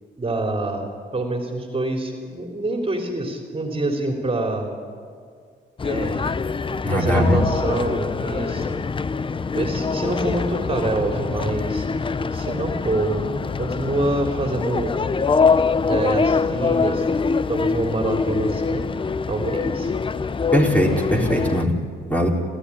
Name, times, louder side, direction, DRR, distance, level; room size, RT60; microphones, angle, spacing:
voice 1, 0.2-4.7 5.8-6.3 6.9-8.8 9.5-13.3 13.6-14.9 15.9-18.9 19.3-19.9, right 2 dB, 30° right, 3 dB, 3.2 m, -26 dB
sound 1, 5.8-21.7, left 5 dB, 25° left, 0.6 m, -24 dB
voice 2, 6.8-7.4 20.5-21.8 22.1-22.3, equal, 10° left, 0 dB, 3.8 m, -20 dB
28.0 x 14.5 x 9.9 m, 2.2 s
cardioid pair, 90°, 20 cm